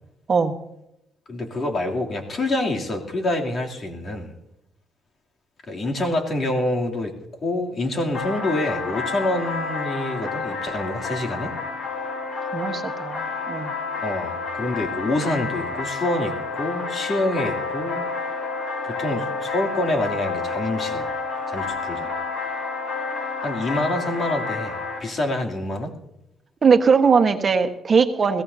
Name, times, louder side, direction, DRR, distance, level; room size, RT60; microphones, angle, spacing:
voice 1, 1.3-4.3 5.7-7.1 7.4-11.5 14.0-18.1 18.8-21.1 21.5-22.1 23.4-25.9, left 1 dB, 45° left, 1 dB, 2.9 m, -26 dB
sound 1, 8.1-25.0, left 4 dB, 60° left, 6.6 m, -29 dB
voice 2, 12.5-13.7 26.6-28.4, right 5 dB, 40° right, 6 dB, 1.4 m, -19 dB
22.0 x 16.5 x 2.8 m, 0.84 s
cardioid pair, 90°, 0 cm